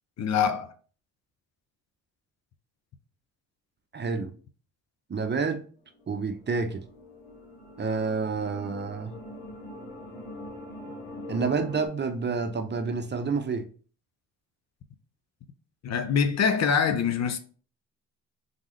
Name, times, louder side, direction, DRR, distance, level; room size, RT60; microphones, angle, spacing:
voice 1, 0.2-0.7 15.8-17.4, left 6 dB, 50° left, 0.7 m, -24 dB
voice 2, 3.9-4.3 5.1-5.6 6.1-6.8 7.8-9.1 11.3-13.6, right 4 dB, 30° right, 0.7 m, -29 dB
sound 1, 6.0-11.9, left 1 dB, 80° left, 2.1 m, -43 dB
3.8 x 3.6 x 3.1 m
supercardioid pair, 60°, 34 cm